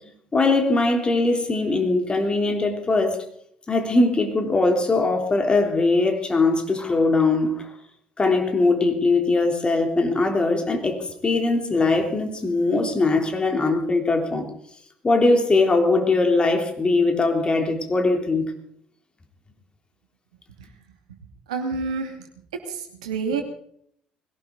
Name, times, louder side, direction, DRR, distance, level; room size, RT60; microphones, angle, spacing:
voice 1, 0.3-3.2 3.7-7.7 8.2-14.5 15.0-18.5, left 3 dB, 25° left, 4 dB, 3.6 m, -21 dB
voice 2, 21.5-22.3 22.7-23.4, right 4 dB, 80° right, 4 dB, 2.7 m, -28 dB
20.5 x 17.5 x 4.0 m, 0.67 s
figure-of-eight pair, 55°, 4 cm